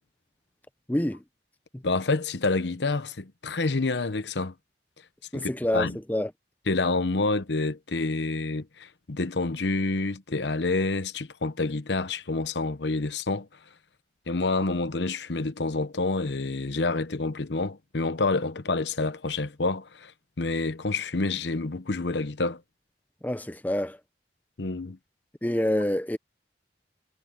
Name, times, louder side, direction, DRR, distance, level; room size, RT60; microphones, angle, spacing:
voice 1, 0.9-1.2 1.7-1.8 5.3-6.3 23.2-24.0 25.4-26.2, left 1 dB, 10° left, 0.6 m, -27 dB
voice 2, 1.8-4.5 5.3-6.0 6.7-13.5 14.3-20.1 20.4-22.6 24.6-25.0, left 3 dB, 75° left, 0.9 m, -28 dB
head